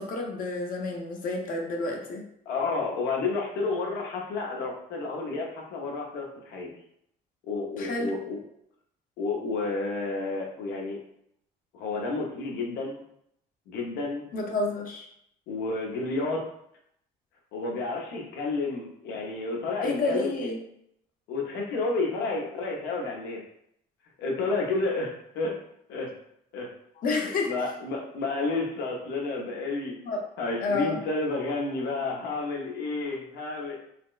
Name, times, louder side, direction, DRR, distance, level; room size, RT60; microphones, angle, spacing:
voice 1, 0.0-2.3 7.8-8.1 14.3-15.1 19.8-20.6 27.0-27.5 30.0-30.2 30.6-31.0, left 3 dB, 55° left, 1 dB, 0.7 m, -29 dB
voice 2, 2.5-6.7 7.5-8.4 9.2-11.0 11.7-13.0 13.7-14.2 15.5-16.5 17.5-20.5 21.3-23.4 24.2-25.1 25.3-25.6 25.9-26.1 26.5-26.7 27.2-30.0 30.4-33.8, left 3 dB, 85° left, 0 dB, 0.8 m, -30 dB
4.2 x 2.0 x 2.4 m, 0.73 s
cardioid pair, 110°, 17 cm